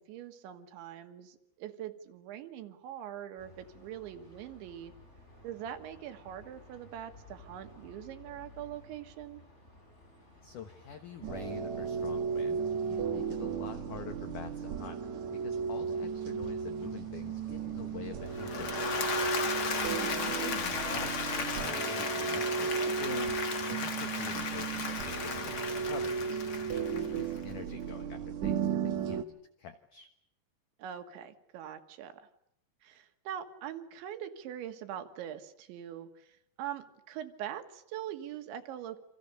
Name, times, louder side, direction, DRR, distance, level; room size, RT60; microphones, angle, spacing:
voice 1, 0.0-4.9 5.4-9.4 19.8-20.4 30.8-32.3 32.8-39.0, right 10 dB, 90° right, 7 dB, 4.0 m, -43 dB
sound 1, 3.4-20.8, left 1 dB, 15° left, 6.1 m, -55 dB
voice 2, 10.4-12.6 12.9-15.0 15.3-19.1 19.8-26.2 26.6-29.2 29.6-30.1, left 8 dB, 60° left, 8 dB, 2.3 m, -46 dB
sound 2, 11.2-29.2, right 6 dB, 60° right, 2.0 m, -35 dB
Applause / Crowd, 18.3-27.4, left 5 dB, 45° left, 1.8 m, -35 dB
29.0 x 26.5 x 6.7 m, 0.74 s
omnidirectional pair, 5.1 m